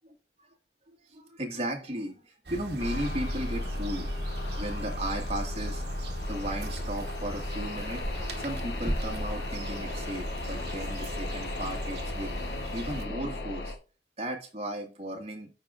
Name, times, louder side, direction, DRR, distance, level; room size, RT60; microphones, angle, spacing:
voice 1, 1.1-4.1 4.6-5.8 6.3-12.3 12.7-13.8 14.2-15.5, right 1 dB, 35° right, 1 dB, 1.8 m, -36 dB
sound 1, 2.5-13.1, right 1 dB, 65° right, 1.2 m, -41 dB
sound 2, 2.8-13.8, left 1 dB, 75° left, 1.1 m, -35 dB
sound 3, 6.6-11.6, equal, ahead, 0.6 m, -40 dB
14.0 x 4.8 x 2.5 m, 0.34 s
head